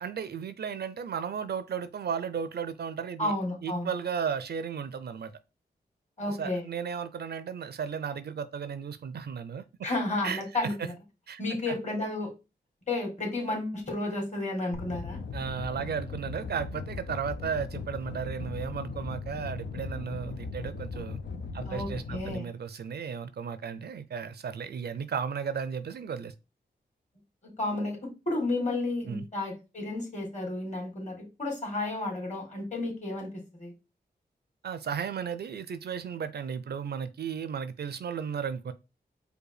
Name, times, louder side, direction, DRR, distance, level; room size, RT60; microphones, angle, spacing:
voice 1, 0.0-3.3 3.6-5.3 6.2-9.6 10.2-10.9 11.3-11.4 11.7-11.8 15.3-21.2 21.5-26.3 29.0-29.3 34.6-38.7, right 7 dB, 65° right, 0.4 m, -34 dB
voice 2, 3.2-3.9 6.2-6.6 9.8-10.9 11.4-12.3 12.9-15.2 21.7-22.5 27.6-33.7, left 2 dB, 40° left, 2.2 m, -32 dB
sound 1, 14.7-22.4, left 4 dB, 80° left, 0.6 m, -38 dB
5.0 x 2.2 x 4.8 m
cardioid pair, 50°, 18 cm